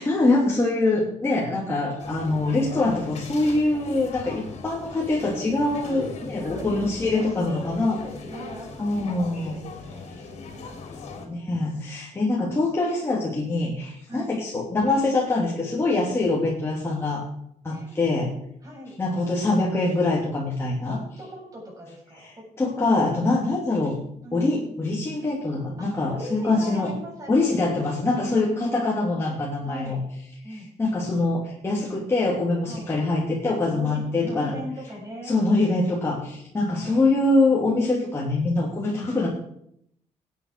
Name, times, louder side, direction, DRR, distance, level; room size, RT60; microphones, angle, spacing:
voice 1, 0.0-8.0 8.8-9.6 11.3-17.2 17.6-18.3 19.0-21.0 22.2-23.9 24.3-26.9 27.3-30.0 30.5-34.6 35.3-39.3, left 2 dB, 20° left, -4 dB, 2.8 m, -24 dB
voice 2, 1.4-1.7 5.8-6.0 6.4-10.7 11.1-11.7 12.1-12.2 14.1-14.4 17.7-18.0 18.6-19.0 20.8-22.9 24.2-24.7 25.8-28.9 29.7-30.0 30.4-30.7 32.7-32.9 33.7-35.4 36.3-36.4 36.7-37.1, equal, 30° right, -2 dB, 7.1 m, -40 dB
sound 1, 2.0-11.3, left 4 dB, 65° left, 3.2 m, -39 dB
21.0 x 8.9 x 4.9 m, 0.74 s
cardioid pair, 135°, 12 cm